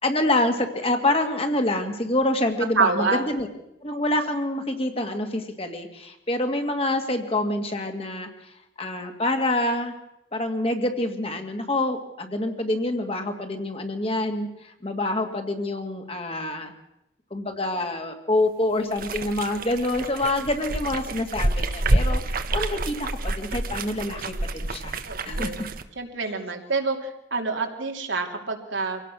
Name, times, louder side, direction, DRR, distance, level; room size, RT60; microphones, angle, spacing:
voice 1, 0.0-3.5 3.8-8.3 8.8-9.9 10.3-16.7 17.3-25.7, left 1 dB, 30° left, 5 dB, 2.0 m, -26 dB
voice 2, 2.8-3.2 25.0-25.6 26.0-29.0, right 4 dB, 85° right, 2 dB, 3.0 m, -27 dB
sound 1, 18.9-25.8, right 2 dB, 50° right, 1.1 m, -28 dB
25.0 x 17.5 x 6.3 m, 0.84 s
head